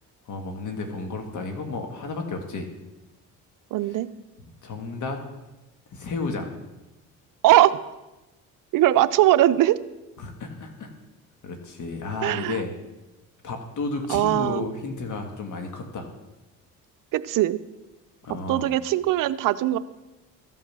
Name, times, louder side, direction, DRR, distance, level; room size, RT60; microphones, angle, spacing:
voice 1, 0.3-2.7 3.9-4.0 4.4-5.2 5.9-6.6 10.2-10.9 11.4-12.7 13.4-16.1 18.2-18.7, left 3 dB, 55° left, 4 dB, 1.7 m, -32 dB
voice 2, 3.7-4.1 7.4-7.8 8.7-9.8 12.2-12.6 14.1-14.7 17.1-17.6 18.5-19.8, right 14 dB, 65° right, 15 dB, 0.6 m, -20 dB
14.0 x 5.5 x 6.1 m, 1.1 s
cardioid pair, 85°, 35 cm